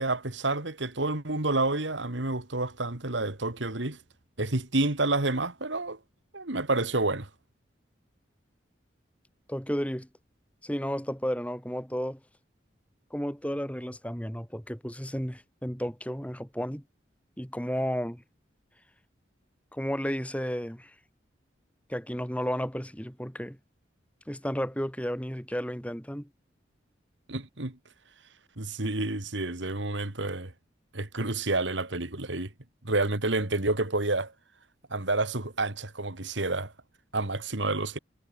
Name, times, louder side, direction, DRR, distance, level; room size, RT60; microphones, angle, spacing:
voice 1, 0.0-4.0 4.4-6.0 6.3-7.3 27.3-27.8 28.6-30.5 30.9-32.5 32.8-34.3 34.9-36.7 37.1-38.0, right 2 dB, 80° right, 2.5 m, -29 dB
voice 2, 9.5-10.1 10.6-12.2 13.1-16.9 17.4-18.2 19.7-21.0 21.9-23.6 24.3-26.3, equal, 5° left, 7.1 m, -33 dB
head